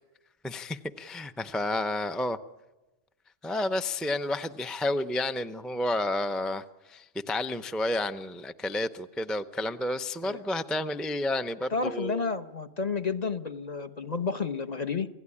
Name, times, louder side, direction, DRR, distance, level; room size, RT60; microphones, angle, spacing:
voice 1, 0.4-2.4 3.4-12.3, left 1 dB, ahead, 9 dB, 0.4 m, -31 dB
voice 2, 11.7-15.1, left 5 dB, 35° left, 8 dB, 0.9 m, -31 dB
28.5 x 17.0 x 9.9 m, 1.1 s
omnidirectional pair, 1.3 m